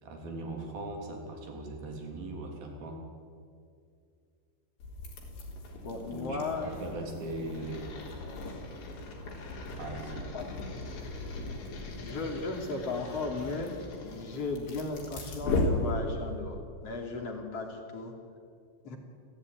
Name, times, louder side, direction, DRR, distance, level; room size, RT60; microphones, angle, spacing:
voice 1, 0.0-3.0 6.1-7.8 9.8-10.3, right 2 dB, 55° right, 2 dB, 5.2 m, -39 dB
sound 1, 4.8-16.4, left 2 dB, 70° left, 6.0 m, -37 dB
voice 2, 5.8-6.7 10.3-10.4 11.4-11.6 12.0-18.1 18.8-19.0, left 3 dB, 35° left, 2 dB, 3.7 m, -36 dB
30.0 x 15.0 x 9.8 m, 2.4 s
omnidirectional pair, 5.3 m